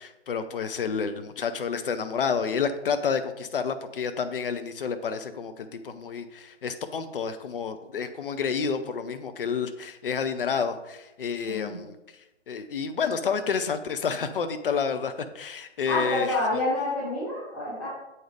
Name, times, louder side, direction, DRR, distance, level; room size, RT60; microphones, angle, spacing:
voice 1, 0.0-11.9 12.5-16.4, left 6 dB, 50° left, 9 dB, 0.6 m, -29 dB
voice 2, 11.4-11.8 15.9-17.9, left 2 dB, 25° left, -9 dB, 1.8 m, -28 dB
7.7 x 4.0 x 3.4 m, 0.95 s
figure-of-eight pair, 140°, 36 cm